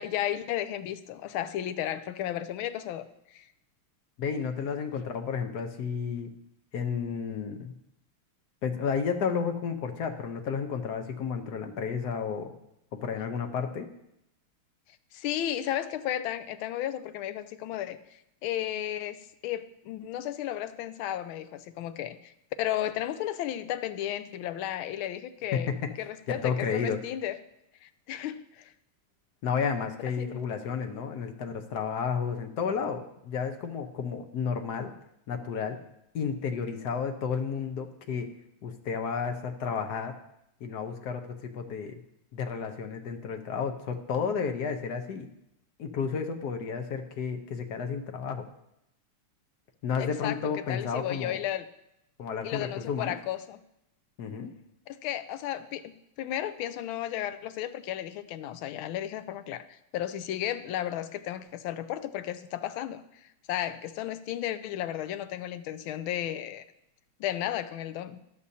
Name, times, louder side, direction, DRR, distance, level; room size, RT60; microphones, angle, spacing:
voice 1, 0.0-3.4 15.1-19.2 19.4-22.3 22.6-25.7 26.0-27.4 27.8-28.7 30.2-30.4 50.0-50.4 50.7-51.7 52.4-53.6 54.9-66.6 67.2-68.2, left 12 dB, 75° left, 12 dB, 1.4 m, -34 dB
voice 2, 4.2-6.3 6.7-7.7 8.6-12.5 12.9-13.9 25.5-26.0 26.3-27.0 29.4-34.9 35.3-35.8 36.1-38.3 38.6-40.2 40.6-42.0 42.3-45.3 45.8-48.4 49.8-51.4 52.2-53.2 54.2-54.5, left 6 dB, 60° left, 6 dB, 1.2 m, -32 dB
13.5 x 11.5 x 2.8 m, 0.82 s
omnidirectional pair, 2.4 m